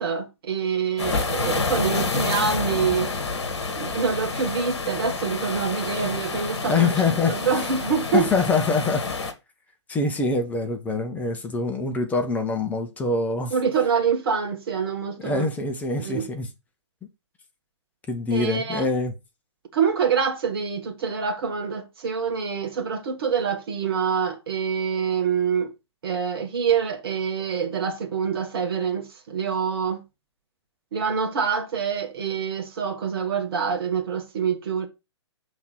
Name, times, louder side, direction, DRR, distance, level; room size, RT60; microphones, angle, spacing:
voice 1, 0.0-3.1 3.7-6.9 7.3-8.3 13.5-15.5 16.0-16.3 18.3-18.9 19.7-25.7 26.0-30.0 30.9-34.9, right 6 dB, 50° right, 1.5 m, -26 dB
sound 1, 1.0-9.3, left 4 dB, 60° left, 1.5 m, -28 dB
voice 2, 6.7-7.3 8.1-9.0 9.9-13.5 15.2-16.5 18.1-19.1, left 4 dB, 10° left, 1.0 m, -24 dB
6.2 x 3.7 x 5.7 m
figure-of-eight pair, 120°, 15 cm